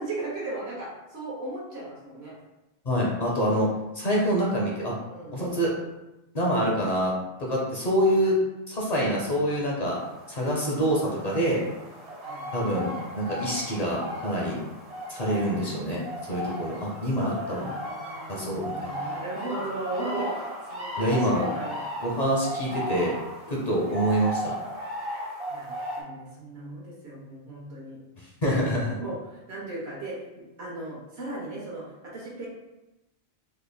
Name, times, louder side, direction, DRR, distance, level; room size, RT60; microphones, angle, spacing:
voice 1, 0.0-2.4 5.1-5.4 8.2-8.3 10.3-10.5 12.2-12.5 17.4-21.8 23.5-23.8 25.5-28.0 28.5-28.6 28.9-30.2 30.6-32.5, right 2 dB, 80° right, -5 dB, 1.0 m, -37 dB
voice 2, 2.9-3.7 3.9-5.0 5.3-5.7 6.3-7.1 7.4-8.4 8.7-10.0 10.3-11.6 12.5-14.6 15.1-16.0 16.3-17.7 18.3-19.0 21.0-21.4 22.0-23.1 23.5-24.6 28.4-29.0, equal, 45° left, -3 dB, 0.7 m, -26 dB
sound 1, 9.9-26.0, equal, 40° right, 0.7 m, -36 dB
3.5 x 3.2 x 2.2 m, 0.98 s
omnidirectional pair, 1.1 m